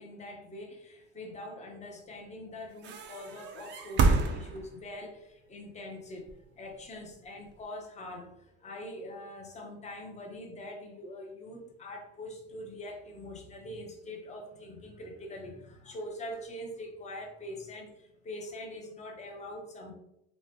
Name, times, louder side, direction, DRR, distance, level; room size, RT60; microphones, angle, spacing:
voice 1, 0.0-6.3 6.6-19.9, left 1 dB, 25° left, 1 dB, 0.6 m, -43 dB
sound 1, 2.8-5.0 6.2-7.6, right 4 dB, 40° right, 0.4 m, -29 dB
3.0 x 2.1 x 2.7 m, 0.82 s
cardioid pair, 120°, 29 cm